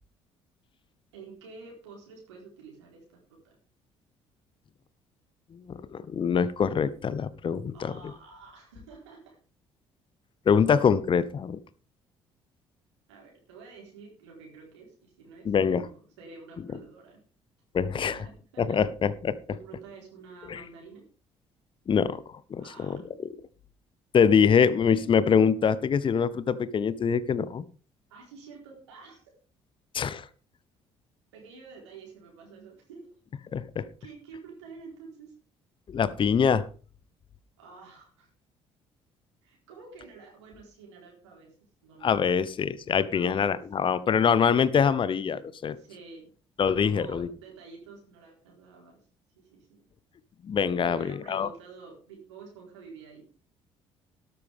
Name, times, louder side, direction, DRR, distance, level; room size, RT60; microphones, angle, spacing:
voice 1, 1.1-3.6 7.7-9.4 13.1-17.2 17.8-18.8 19.5-21.1 22.6-23.0 28.1-29.2 31.3-33.1 34.0-35.4 37.6-38.3 39.4-41.5 41.8-42.2 43.1-43.6 45.8-46.3 46.8-49.0 49.3-49.8 50.8-53.2, right 4 dB, 75° right, -1 dB, 4.2 m, -49 dB
voice 2, 5.5-7.9 10.5-11.6 15.4-15.9 17.7-18.2 18.6-19.3 20.5-20.6 21.9-23.0 24.1-27.6 29.9-30.3 33.5-33.8 35.9-36.6 42.0-45.8 46.6-47.3 50.4-51.5, left 7 dB, 35° left, 17 dB, 0.9 m, -24 dB
12.5 x 12.5 x 3.6 m, 0.37 s
figure-of-eight pair, 50°, 15 cm